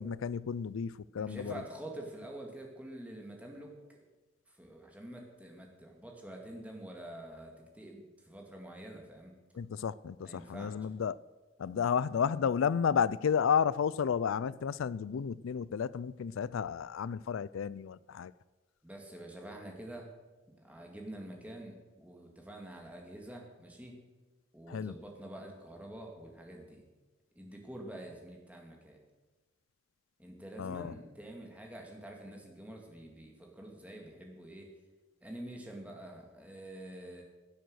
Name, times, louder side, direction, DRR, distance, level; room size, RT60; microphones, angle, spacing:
voice 1, 0.0-1.5 9.5-11.2 11.6-18.3 24.7-24.9 30.6-30.9, left 7 dB, 85° left, 0.4 m, -32 dB
voice 2, 1.2-4.0 4.5-9.3 10.2-10.8 18.8-20.1 20.6-24.0 24.5-26.8 27.4-29.0 30.2-34.7 35.2-37.2, right 1 dB, 5° right, 2.2 m, -47 dB
16.5 x 9.4 x 6.3 m
head